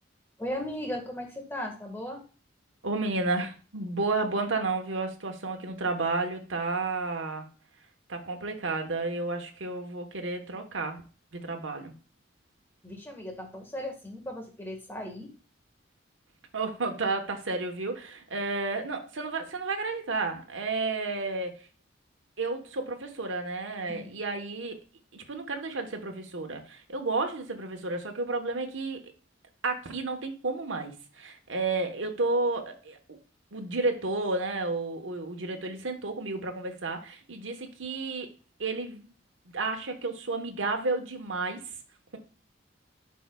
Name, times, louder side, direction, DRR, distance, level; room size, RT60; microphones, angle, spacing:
voice 1, 0.4-2.2 12.8-15.3 23.9-24.2, left 1 dB, 10° left, 2 dB, 1.5 m, -37 dB
voice 2, 2.8-7.5 8.1-11.0 11.3-11.9 16.5-21.5 22.4-24.8 25.1-29.0 29.6-33.0 33.5-38.3 38.6-39.1 39.5-41.6, right 3 dB, 80° right, 5 dB, 1.1 m, -31 dB
11.0 x 4.7 x 2.3 m, 0.37 s
head